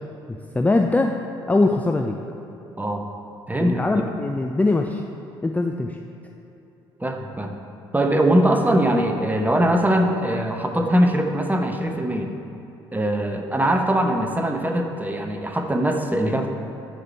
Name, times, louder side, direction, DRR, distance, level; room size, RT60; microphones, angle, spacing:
voice 1, 0.3-1.1 1.5-2.1 3.6-5.0 5.4-6.0, left 2 dB, 10° left, 3 dB, 0.5 m, -21 dB
voice 2, 3.5-4.1 7.0-7.5 7.9-12.3 12.9-16.5, right 1 dB, 15° right, 4 dB, 1.0 m, -21 dB
12.5 x 5.0 x 4.3 m, 2.9 s
figure-of-eight pair, 50°, 13 cm